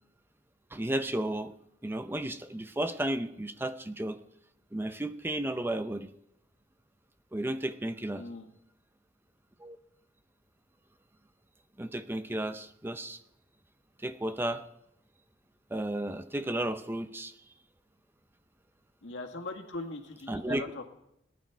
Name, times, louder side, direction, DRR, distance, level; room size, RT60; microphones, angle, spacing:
voice 1, 0.7-1.5 1.8-4.2 4.7-6.1 7.3-8.2 9.6-9.8 11.8-13.2 14.0-14.6 15.7-17.3 20.3-20.6, right 1 dB, 10° right, 10 dB, 0.6 m, -33 dB
voice 2, 8.2-8.5 19.0-20.8, left 2 dB, 90° left, 4 dB, 1.8 m, -40 dB
18.5 x 10.5 x 4.5 m, 0.80 s
head